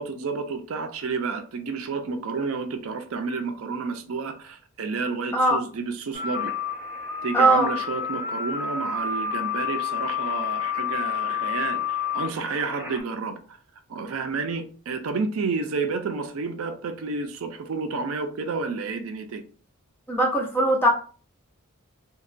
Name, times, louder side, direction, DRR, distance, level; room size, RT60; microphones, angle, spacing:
voice 1, 0.0-6.5 7.2-13.6 13.9-19.4, right 4 dB, 65° right, 0.4 m, -30 dB
sound 1, 6.1-13.0, left 7 dB, 5° right, 0.8 m, -29 dB
voice 2, 7.3-7.7 20.1-20.9, right 1 dB, 10° left, 0.5 m, -20 dB
2.8 x 2.1 x 2.5 m
head